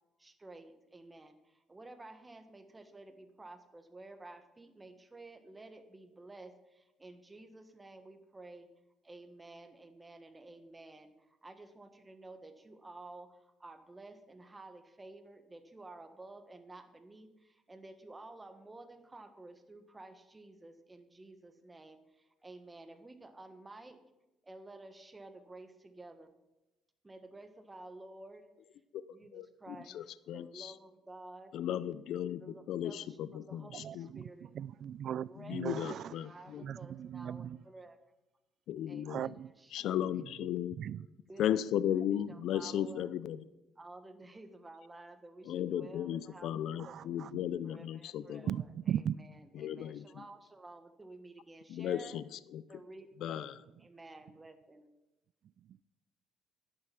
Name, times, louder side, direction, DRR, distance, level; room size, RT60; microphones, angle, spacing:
voice 1, 0.2-8.7 9.0-24.0 24.4-26.3 27.0-28.5 29.1-31.5 32.4-34.5 35.2-35.6 35.9-38.0 38.9-40.0 41.3-41.5 41.9-42.0 42.3-43.1 43.8-47.1 47.6-52.2 52.7-54.9, right 2 dB, 15° right, 1.4 m, -52 dB
voice 2, 29.3-30.7 31.5-34.1 35.4-36.6 38.7-39.2 39.7-40.8 41.4-43.4 45.5-48.5 49.6-50.2 51.7-52.8 53.2-53.5, left 10 dB, 70° left, 0.4 m, -36 dB
voice 3, 33.7-36.1 36.6-37.6 39.1-39.5 40.8-41.0 46.8-47.5 48.5-49.2 55.7-55.8, right 9 dB, 60° right, 0.3 m, -38 dB
11.0 x 9.3 x 5.9 m
cardioid pair, 105°, 0 cm